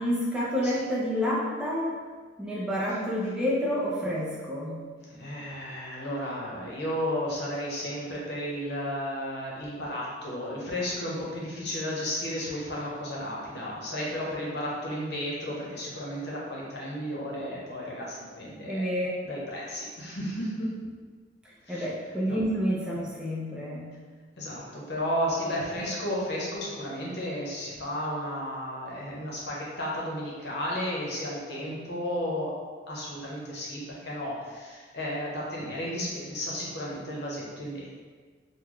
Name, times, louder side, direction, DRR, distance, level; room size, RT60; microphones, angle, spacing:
voice 1, 0.0-2.0 2.4-4.8 18.7-19.1 21.7-23.9, equal, 5° right, -6 dB, 0.5 m, -29 dB
voice 2, 5.0-18.9 19.2-20.7 21.7-21.9 22.3-22.4 24.4-32.5 32.9-37.9, equal, 60° left, -5 dB, 0.8 m, -33 dB
3.9 x 2.2 x 3.0 m, 1.5 s
head